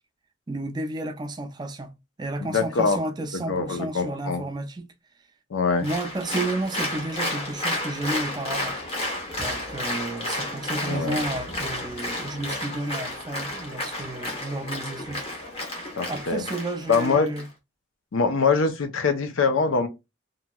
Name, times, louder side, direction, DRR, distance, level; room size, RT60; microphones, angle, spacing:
voice 1, 0.5-1.9 2.2-4.9 5.8-8.8 9.4-15.2 16.1-17.5, right 2 dB, 20° right, 0.3 m, -32 dB
voice 2, 2.4-3.0 3.3-4.4 5.5-5.9 10.8-11.2 16.0-16.4 16.9-17.4 18.1-19.9, left 4 dB, 90° left, 0.6 m, -23 dB
Applause, 5.8-17.5, left 1 dB, 30° left, 0.9 m, -32 dB
2.9 x 2.5 x 2.2 m
head